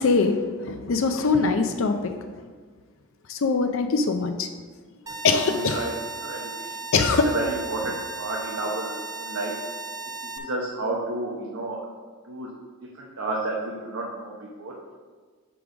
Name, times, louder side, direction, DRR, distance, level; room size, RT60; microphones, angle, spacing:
voice 1, 0.0-2.3 3.3-4.5 5.2-5.9 6.9-7.3, left 4 dB, 65° left, 6 dB, 0.5 m, -22 dB
voice 2, 5.0-5.9 6.2-6.7 7.1-9.6 10.2-11.9 12.2-12.5 12.8-14.8, right 2 dB, 75° right, -3 dB, 0.9 m, -31 dB
sound 1, 5.1-10.4, right 3 dB, 15° right, 0.5 m, -36 dB
5.2 x 4.8 x 6.0 m, 1.5 s
head